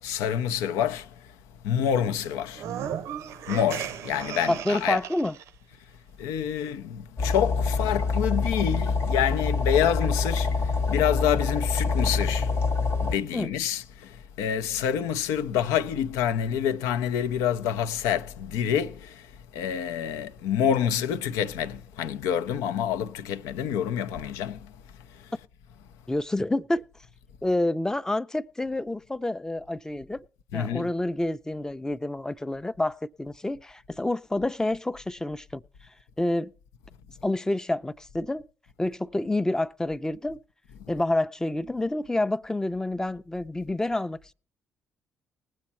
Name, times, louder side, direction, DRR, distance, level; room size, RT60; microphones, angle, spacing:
voice 1, 0.0-1.3 1.6-2.7 3.5-5.0 6.2-12.6 13.0-24.7 25.1-25.3 30.5-30.9, left 9 dB, 70° left, 0.6 m, -27 dB
sound 1, 2.5-5.5, right 9 dB, 60° right, 0.6 m, -35 dB
voice 2, 4.5-5.4 13.3-13.5 26.1-26.9 27.4-30.2 30.5-35.6 36.2-36.5 37.2-38.5 38.8-40.4 40.9-44.3, left 1 dB, 10° left, 0.6 m, -28 dB
sound 2, 7.2-13.2, left 4 dB, 55° left, 1.1 m, -26 dB
19.5 x 7.5 x 4.2 m
figure-of-eight pair, 45°, 5 cm